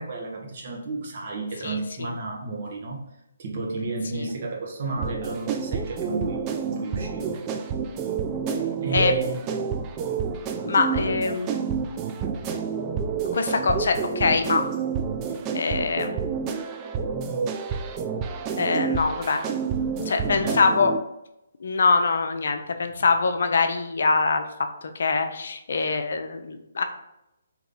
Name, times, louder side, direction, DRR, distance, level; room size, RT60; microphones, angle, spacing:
voice 1, 0.0-3.0 3.4-7.4 8.8-9.4 20.4-20.6, right 3 dB, 50° right, -1 dB, 1.1 m, -32 dB
voice 2, 1.6-2.1 4.1-4.3 8.9-9.1 10.6-11.5 13.3-14.6 15.5-16.2 18.6-19.4 20.0-20.9 21.6-26.8, left 4 dB, 65° left, 7 dB, 0.5 m, -24 dB
sound 1, 5.0-21.0, right 6 dB, 25° right, 0.4 m, -29 dB
3.8 x 2.9 x 3.7 m, 0.87 s
hypercardioid pair, 145°, 0 cm